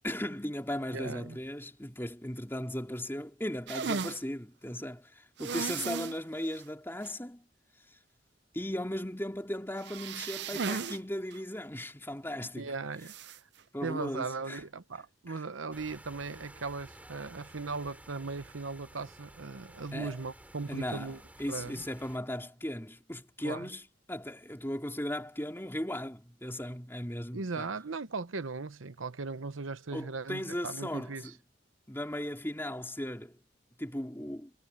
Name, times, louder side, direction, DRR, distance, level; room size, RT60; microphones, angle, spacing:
voice 1, 0.0-7.4 8.5-12.7 13.7-14.6 15.3-15.4 19.9-20.2 20.7-27.7 29.9-31.3 31.9-33.4 33.8-34.5, left 1 dB, 10° left, 3.2 m, -37 dB
voice 2, 0.9-1.4 12.6-13.4 13.8-21.2 21.5-21.8 23.4-23.7 27.3-31.3, right 4 dB, 85° right, 0.9 m, -38 dB
sound 1, 3.7-4.2 5.4-6.2 6.5-6.6 7.0-7.1 9.8-11.0 11.3-11.4 13.0-13.4, right 5 dB, 55° right, 0.6 m, -35 dB
sound 2, 15.7-22.2, right 1 dB, 10° right, 3.0 m, -53 dB
head